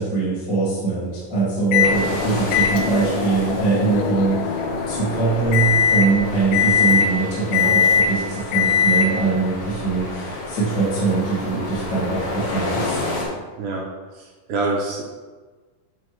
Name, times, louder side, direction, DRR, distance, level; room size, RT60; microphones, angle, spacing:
voice 1, 0.0-4.6 4.9-13.0, right 4 dB, 30° left, -10 dB, 2.0 m, -22 dB
Microwave oven, 1.7-2.0 2.5-9.3, left 7 dB, 80° left, 2.4 m, -21 dB
sound 1, 1.8-13.2, left 2 dB, 60° left, 1.7 m, -30 dB
voice 2, 13.6-15.0, right 3 dB, 70° right, -2 dB, 2.0 m, -27 dB
9.5 x 5.0 x 3.2 m, 1.4 s
omnidirectional pair, 4.2 m